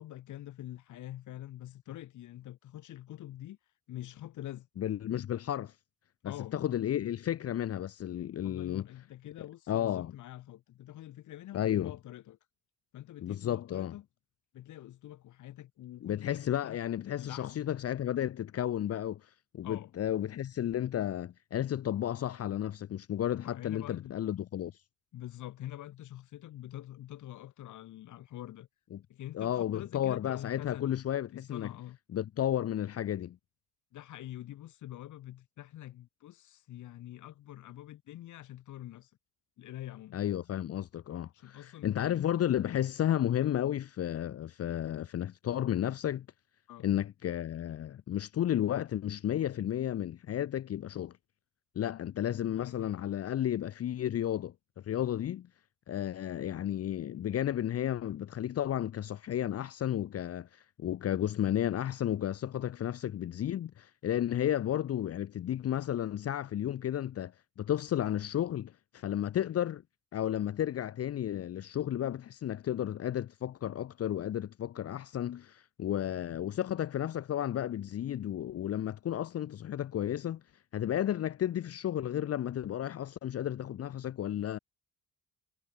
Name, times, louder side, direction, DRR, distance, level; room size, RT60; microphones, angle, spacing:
voice 1, 0.0-3.6 3.9-4.7 6.2-6.6 8.4-12.4 12.9-14.0 14.5-16.8 17.2-17.6 19.6-19.9 23.4-24.2 25.1-28.7 29.1-30.9 31.3-32.0 33.9-39.1 39.6-40.2 41.3-42.2 43.4-43.5 46.7-46.9 52.5-53.1 76.0-76.4, left 13 dB, 80° left, 2.2 m, -46 dB
voice 2, 4.8-5.7 6.2-8.8 9.7-10.1 11.5-11.9 13.2-13.9 16.0-24.7 28.9-29.0 29.3-31.7 32.1-33.4 40.1-46.3 46.8-51.1 51.8-54.5 54.8-55.5 55.9-67.3 67.6-69.8 70.1-80.4 80.7-84.6, left 11 dB, 55° left, 0.8 m, -33 dB
cardioid pair, 90°, 30 cm